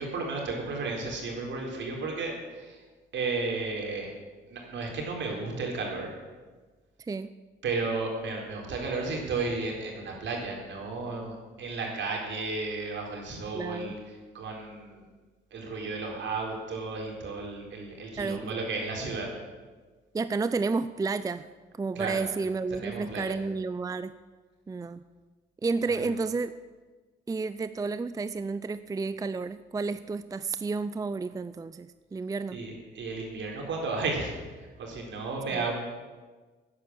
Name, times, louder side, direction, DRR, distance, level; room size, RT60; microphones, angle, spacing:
voice 1, 0.0-2.8 3.1-4.1 4.5-6.1 7.6-14.0 14.3-15.0 15.5-19.3 21.9-22.3 22.7-23.4 25.9-26.1 32.5-35.7, right 3 dB, 70° right, 0 dB, 4.1 m, -33 dB
voice 2, 7.0-7.3 13.5-14.0 18.2-18.5 20.1-21.5 21.8-24.1 24.7-25.0 25.6-26.5 27.3-32.6 35.5-35.7, right 4 dB, 20° right, 13 dB, 0.4 m, -31 dB
12.0 x 9.7 x 7.6 m, 1.3 s
cardioid pair, 90°, 20 cm